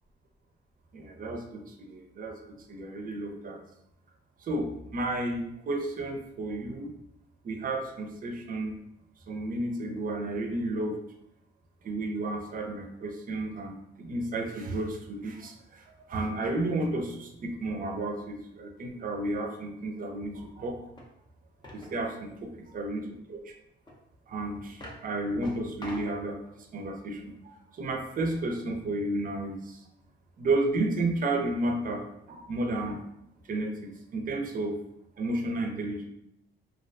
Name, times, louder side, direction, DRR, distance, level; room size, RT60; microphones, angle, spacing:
voice 1, 0.9-3.6 4.4-6.9 7.4-8.7 9.3-11.0 11.8-20.8 21.7-23.4 24.3-29.8 30.4-33.0 33.5-34.8 35.2-36.1, right 2 dB, 45° right, 3 dB, 0.5 m, -32 dB
sound 1, 21.0-21.1 21.6-22.0 23.9-24.0 24.5-25.0 25.4-26.2, left 1 dB, 20° left, 0.6 m, -42 dB
2.3 x 2.2 x 2.5 m, 0.78 s
cardioid pair, 90°, 20 cm